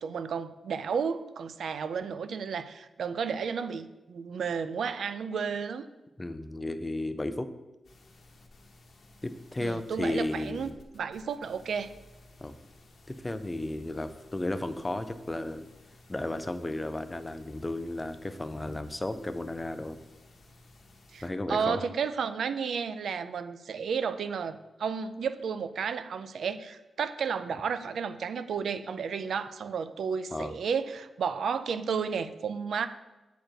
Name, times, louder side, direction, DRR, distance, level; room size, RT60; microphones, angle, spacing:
voice 1, 0.0-5.9 9.6-10.7 10.9-11.9 21.1-21.2 21.5-32.9, right 6 dB, 70° right, 11 dB, 0.4 m, -32 dB
voice 2, 6.2-7.5 9.2-10.7 12.4-12.5 13.1-15.7 16.1-20.0 21.2-21.8 30.3-30.5, left 1 dB, 15° left, 10 dB, 0.4 m, -34 dB
sound 1, 7.8-21.3, left 2 dB, 45° left, 1.1 m, -57 dB
7.6 x 5.1 x 4.5 m, 1.1 s
wide cardioid pair, 160°, 0 cm